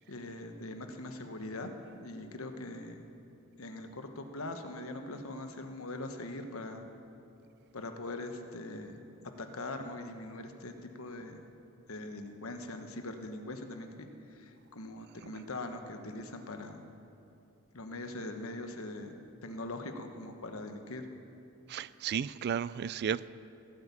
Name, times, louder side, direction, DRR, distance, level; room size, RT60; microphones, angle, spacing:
voice 1, 0.1-3.1 3.6-6.8 7.7-9.0 9.4-11.4 11.9-16.8 17.7-19.1 19.4-21.0, left 2 dB, 80° left, 6 dB, 1.3 m, -42 dB
voice 2, 21.7-23.3, right 8 dB, 50° right, 18 dB, 0.3 m, -33 dB
17.0 x 8.3 x 8.5 m, 2.7 s
head